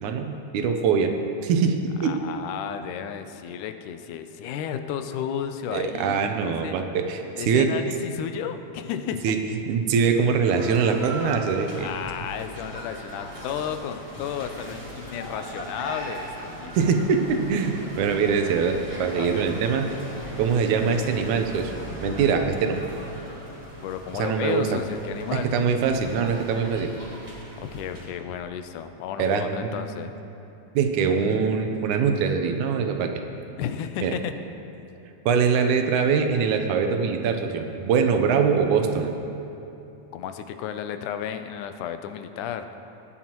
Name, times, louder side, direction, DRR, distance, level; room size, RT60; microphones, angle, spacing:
voice 1, 0.0-1.1 1.4-2.2 5.7-7.7 9.2-9.4 9.7-11.9 16.7-19.9 20.4-21.7 22.0-22.8 24.2-24.8 25.3-26.9 29.2-29.8 30.7-33.1 34.0-34.1 35.3-39.1, right 6 dB, 80° right, 5 dB, 2.2 m, -23 dB
voice 2, 2.0-6.8 7.4-9.3 11.7-16.7 18.4-18.8 19.2-19.5 23.8-25.5 27.5-30.1 33.6-34.3 40.1-42.7, left 9 dB, 85° left, 8 dB, 2.1 m, -33 dB
sound 1, 10.4-28.1, right 1 dB, 15° right, 1.5 m, -39 dB
sound 2, 11.7-27.9, equal, 50° left, 2.5 m, -47 dB
18.0 x 10.0 x 3.0 m, 2.9 s
omnidirectional pair, 3.5 m